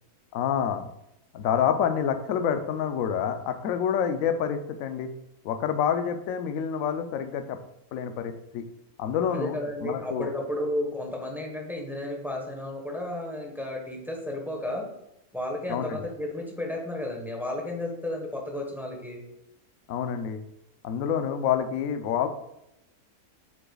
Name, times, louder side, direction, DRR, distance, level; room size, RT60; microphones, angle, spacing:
voice 1, 0.3-0.9 1.3-5.1 5.4-7.6 7.9-8.6 9.0-9.6 9.8-10.3 15.7-16.0 19.9-20.4 20.8-22.3, left 8 dB, 65° left, 7 dB, 0.9 m, -27 dB
voice 2, 9.3-14.9 15.3-19.2, left 1 dB, ahead, 0 dB, 1.0 m, -33 dB
7.7 x 6.2 x 2.3 m, 0.82 s
omnidirectional pair, 1.6 m